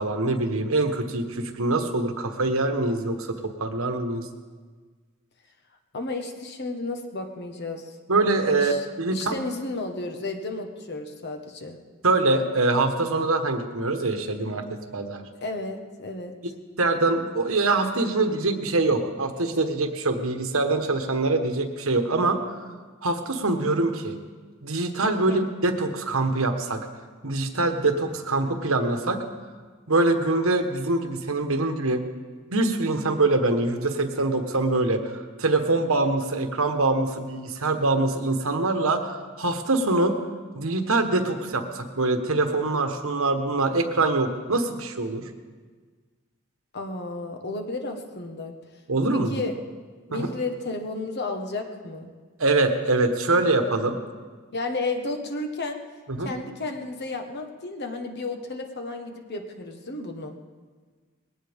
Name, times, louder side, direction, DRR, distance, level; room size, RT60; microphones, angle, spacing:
voice 1, 0.0-4.2 8.1-9.4 12.0-15.2 16.8-22.4 23.0-24.2 24.6-26.9 27.2-29.2 29.9-32.0 32.5-40.1 40.5-45.3 48.9-49.4 50.1-50.3 52.4-54.0 56.1-56.3, right 2 dB, 65° right, 6 dB, 1.3 m, -24 dB
voice 2, 5.9-8.0 8.6-8.8 9.1-11.8 15.4-16.3 25.3-25.5 46.7-48.5 49.3-49.5 50.1-52.1 54.5-55.8 56.2-60.4, left 2 dB, 50° left, 4 dB, 1.5 m, -32 dB
20.5 x 17.5 x 3.6 m, 1.5 s
head